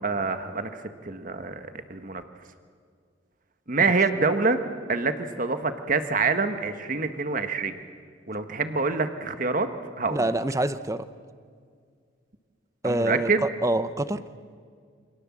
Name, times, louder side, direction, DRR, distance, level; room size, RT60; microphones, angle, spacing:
voice 1, 0.0-2.2 3.7-4.6 4.9-7.8 8.3-9.7 10.0-10.3 12.8-13.5, right 4 dB, 45° right, 8 dB, 1.4 m, -26 dB
voice 2, 10.1-11.1 12.8-14.2, right 1 dB, 15° right, 13 dB, 0.8 m, -26 dB
29.0 x 26.0 x 7.4 m, 2.1 s
head